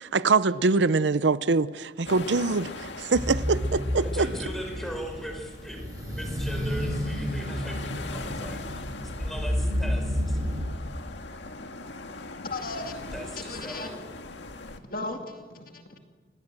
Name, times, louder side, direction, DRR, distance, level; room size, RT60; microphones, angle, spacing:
voice 1, 0.0-4.3, right 4 dB, 80° right, 0.7 m, -24 dB
sound 1, 2.0-14.8, left 2 dB, 85° left, 1.9 m, -41 dB
sound 2, 3.1-10.6, equal, 20° right, 6.5 m, -31 dB
voice 2, 4.0-8.8 9.2-10.4 13.1-14.0, equal, ahead, 5.3 m, -39 dB
voice 3, 12.4-12.9 13.4-13.9 14.9-16.0, left 2 dB, 50° left, 2.3 m, -36 dB
28.5 x 20.0 x 7.7 m
head